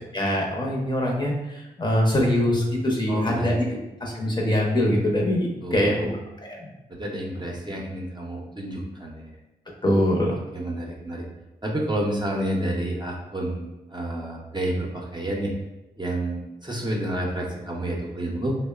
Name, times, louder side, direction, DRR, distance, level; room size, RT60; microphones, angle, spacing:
voice 1, 0.1-3.5 4.0-6.1 6.4-6.6 9.8-10.3, left 1 dB, 25° left, -2 dB, 0.6 m, -23 dB
voice 2, 3.1-3.8 5.6-6.1 6.9-9.3 10.5-11.3 11.6-15.5 16.0-18.6, right 1 dB, 25° right, -2 dB, 0.6 m, -29 dB
2.8 x 2.0 x 2.3 m, 0.98 s
supercardioid pair, 40°, 18 cm